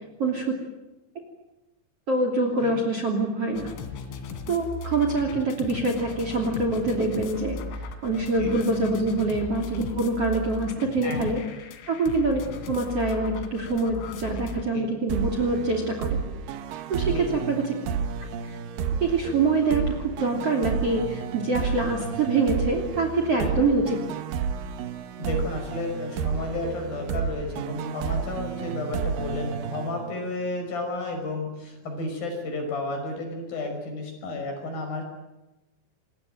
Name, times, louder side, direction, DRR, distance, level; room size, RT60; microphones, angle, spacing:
voice 1, 0.2-0.5 2.1-3.8 4.5-11.4 11.9-16.2 16.9-17.8 18.5-18.6 19.0-24.0, right 3 dB, 35° right, 5 dB, 3.4 m, -25 dB
sound 1, 3.5-14.6, left 4 dB, 85° left, 4.9 m, -37 dB
sound 2, 15.1-30.5, right 6 dB, 65° right, 2.4 m, -31 dB
voice 2, 17.0-17.4 23.4-23.5 25.2-35.0, left 2 dB, 45° left, 4 dB, 7.4 m, -32 dB
27.0 x 21.5 x 9.1 m, 1.0 s
omnidirectional pair, 5.6 m